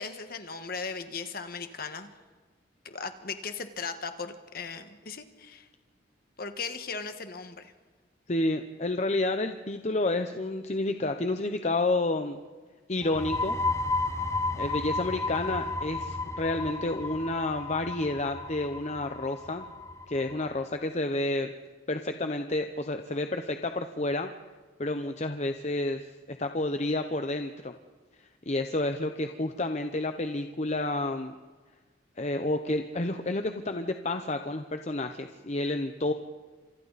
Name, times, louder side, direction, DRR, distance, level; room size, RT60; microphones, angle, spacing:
voice 1, 0.0-2.1 2.8-5.7 6.4-7.7, left 5 dB, 50° left, 8 dB, 1.7 m, -37 dB
voice 2, 8.3-12.4 12.9-13.6 14.6-19.7 20.1-21.5 21.9-24.3 24.8-27.7 28.5-31.3 32.2-36.1, left 2 dB, 35° left, 7 dB, 0.8 m, -30 dB
sound 1, 13.0-20.5, left 3 dB, 15° left, 1.0 m, -33 dB
30.0 x 27.0 x 4.2 m, 1.4 s
head